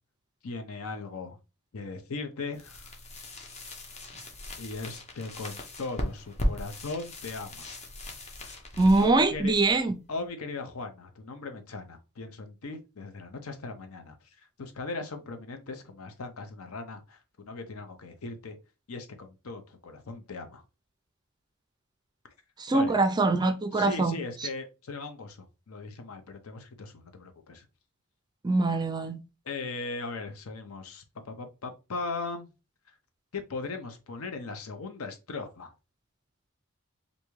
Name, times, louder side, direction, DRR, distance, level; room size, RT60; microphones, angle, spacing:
voice 1, 0.4-1.4 1.7-2.9 4.6-7.7 9.0-9.5 10.1-18.6 18.9-20.6 22.7-23.0 23.7-27.7 29.5-32.5 33.3-35.7, left 3 dB, 70° left, 0.7 m, -38 dB
sound 1, 2.5-10.3, equal, 30° left, 0.7 m, -37 dB
voice 2, 8.8-10.0 22.6-24.2 28.4-29.2, right 2 dB, 20° right, 0.4 m, -23 dB
3.4 x 2.6 x 3.0 m
head